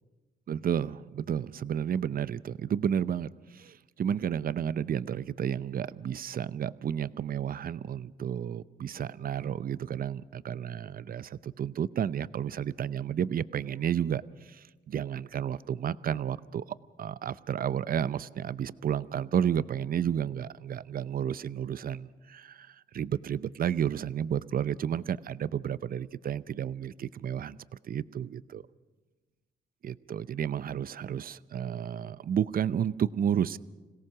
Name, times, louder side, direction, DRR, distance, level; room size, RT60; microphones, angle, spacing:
voice 1, 0.5-16.6 17.0-27.6 27.8-28.6 29.8-33.6, right 9 dB, 45° right, 17 dB, 0.7 m, -32 dB
26.5 x 17.5 x 6.1 m, 1.2 s
cardioid pair, 90°, 20 cm